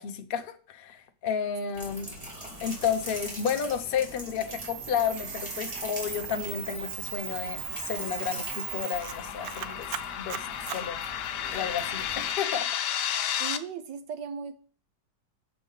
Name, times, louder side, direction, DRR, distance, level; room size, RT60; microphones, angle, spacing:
voice 1, 0.0-2.1 2.6-9.9 10.2-10.5 10.7-12.7, left 7 dB, 50° left, 0.7 m, -32 dB
sound 1, 1.7-12.3, equal, 20° right, 2.2 m, -42 dB
Camera, 4.5-11.6, right 12 dB, 70° right, 1.0 m, -38 dB
sound 2, 5.9-13.6, left 10 dB, 75° left, 1.3 m, -34 dB
voice 2, 13.4-14.6, right 6 dB, 90° right, 1.6 m, -37 dB
6.8 x 4.6 x 5.5 m
omnidirectional pair, 1.9 m